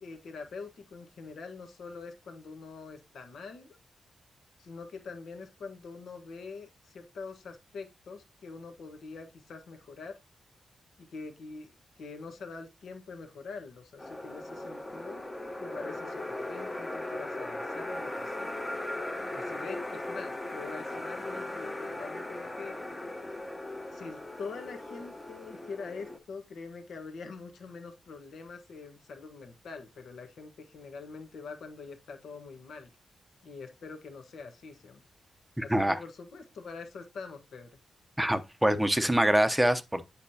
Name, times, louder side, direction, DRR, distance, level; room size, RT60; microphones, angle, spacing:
voice 1, 0.0-3.8 4.6-10.2 11.0-11.7 12.0-15.3 15.6-18.5 19.3-22.7 23.9-32.9 33.4-35.0 35.6-37.7, left 4 dB, 75° left, 1.3 m, -44 dB
sound 1, 14.0-26.2, left 1 dB, 15° left, 1.0 m, -38 dB
voice 2, 35.6-36.0 38.2-40.0, right 1 dB, 5° right, 0.7 m, -25 dB
8.3 x 6.0 x 2.8 m
wide cardioid pair, 130°, 0 cm